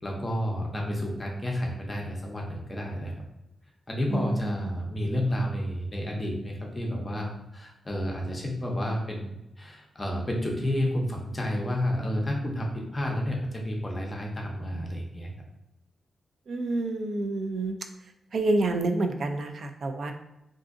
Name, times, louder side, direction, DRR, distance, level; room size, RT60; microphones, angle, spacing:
voice 1, 0.0-3.1 3.9-15.3, equal, 20° left, 0 dB, 0.6 m, -30 dB
voice 2, 4.1-4.7 16.5-17.8 18.3-20.1, right 2 dB, 50° right, 6 dB, 0.3 m, -28 dB
3.7 x 2.5 x 2.4 m, 0.88 s
wide cardioid pair, 160°, 0 cm